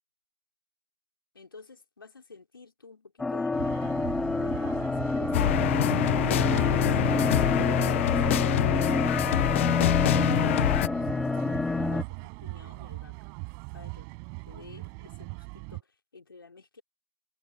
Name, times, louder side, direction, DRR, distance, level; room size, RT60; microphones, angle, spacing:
voice 1, 1.3-6.1 10.0-13.3 13.7-14.1 14.5-16.8, left 4 dB, 70° left, 4.3 m, -50 dB
sound 1, 3.2-12.0, left 3 dB, 5° left, 0.3 m, -28 dB
sound 2, 3.5-15.8, right 40 dB or more, 25° right, 5.2 m, -40 dB
sound 3, 5.3-10.9, left 14 dB, 35° left, 0.8 m, -25 dB
figure-of-eight pair, 135°, 12 cm